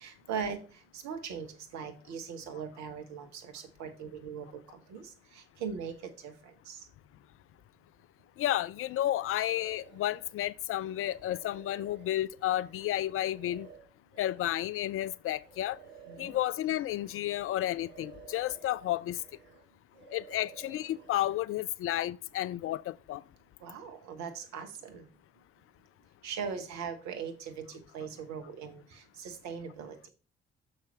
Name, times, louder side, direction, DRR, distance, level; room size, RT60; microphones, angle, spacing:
voice 1, 0.0-6.9 16.1-16.3 23.6-25.1 26.2-30.0, right 6 dB, 65° right, 1.3 m, -40 dB
voice 2, 8.4-13.7 14.2-15.8 16.2-19.2 20.1-23.2, left 13 dB, 50° left, 0.4 m, -32 dB
sound 1, 9.4-10.4 10.8-17.4 17.7-19.7 19.9-21.3, right 6 dB, 35° right, 2.7 m, -54 dB
6.6 x 5.4 x 4.5 m
figure-of-eight pair, 45°, 30 cm